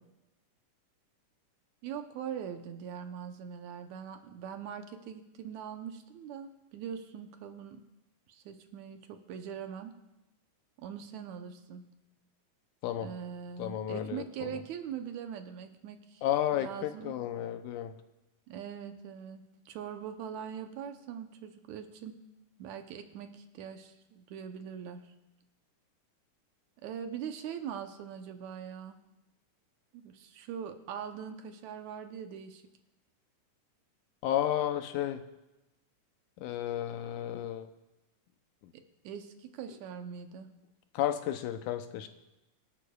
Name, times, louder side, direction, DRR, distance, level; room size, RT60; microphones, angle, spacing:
voice 1, 1.8-7.8 8.3-9.9 10.8-11.9 13.0-16.2 16.5-17.2 18.5-22.2 22.6-25.1 26.8-29.0 29.9-32.6 38.7-40.5, right 8 dB, 75° right, 7 dB, 2.0 m, -42 dB
voice 2, 13.6-14.6 16.2-17.9 34.2-35.2 36.4-37.7 40.9-42.1, left 11 dB, 80° left, 9 dB, 2.1 m, -32 dB
24.5 x 11.0 x 2.3 m, 0.97 s
omnidirectional pair, 3.5 m